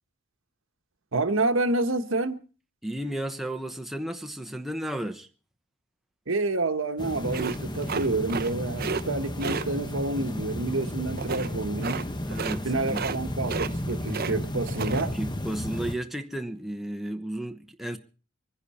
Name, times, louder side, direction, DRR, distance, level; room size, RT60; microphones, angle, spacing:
voice 1, 1.1-2.4 6.3-12.0 12.6-15.1, right 2 dB, 70° right, 1.3 m, -28 dB
voice 2, 2.8-5.3 12.2-13.0 15.0-18.0, right 1 dB, ahead, 0.9 m, -33 dB
sound 1, 7.0-15.9, left 1 dB, 20° left, 0.9 m, -33 dB
sound 2, 7.3-8.5 8.8-9.0 9.4-9.7 11.2-11.5 11.8-12.0 12.3-12.6 12.9-13.2 13.4-14.3 14.6-15.0, right 5 dB, 50° right, 0.7 m, -32 dB
24.5 x 10.5 x 4.3 m
head